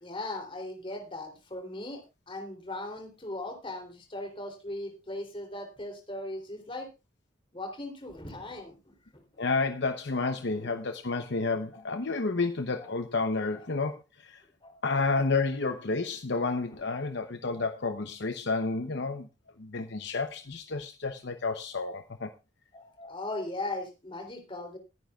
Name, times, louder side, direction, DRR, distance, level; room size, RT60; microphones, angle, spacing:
voice 1, 0.0-6.9 7.5-8.9 10.6-10.7 11.7-11.8 12.8-12.9 14.6-14.8 17.5-17.9 22.7-24.8, left 2 dB, 25° left, 4 dB, 3.4 m, -38 dB
voice 2, 9.4-14.4 14.8-19.3 19.6-22.3, left 3 dB, 60° left, 8 dB, 0.9 m, -30 dB
21.0 x 9.6 x 2.4 m, 0.26 s
head